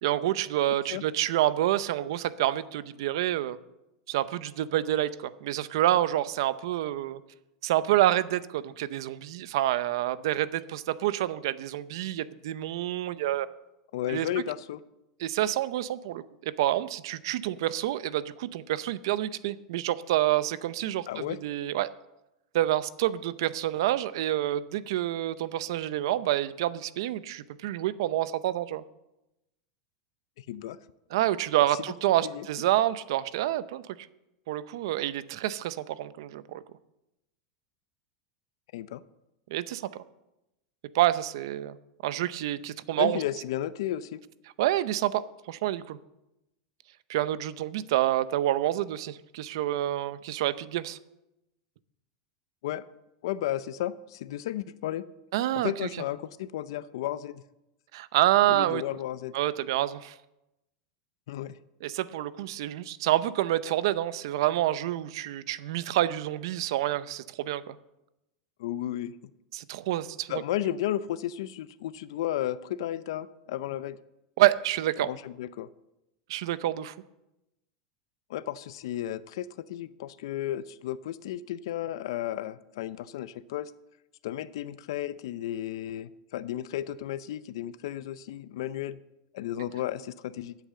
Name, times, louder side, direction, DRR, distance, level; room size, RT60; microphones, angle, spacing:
voice 1, 0.0-3.6 4.1-7.2 7.6-13.5 14.1-14.3 15.2-21.9 22.5-28.8 31.1-33.8 34.5-36.6 39.5-40.0 40.9-41.8 42.0-43.2 44.6-45.2 45.5-46.0 47.1-51.0 55.3-56.0 57.9-58.8 59.3-60.1 61.8-67.8 69.5-70.3 74.4-75.1 76.3-76.9, right 14 dB, 65° right, 15 dB, 0.6 m, -28 dB
voice 2, 13.9-14.8 21.1-21.4 30.4-30.8 32.2-32.4 38.7-39.0 43.0-44.2 52.6-52.8 53.2-55.0 55.5-57.4 58.5-59.3 61.3-61.6 68.6-69.1 70.3-74.0 75.0-75.7 78.3-83.7 84.2-89.0 89.3-90.6, left 12 dB, 70° left, 15 dB, 0.5 m, -33 dB
10.0 x 8.4 x 7.7 m, 0.91 s
supercardioid pair, 165°, 3 cm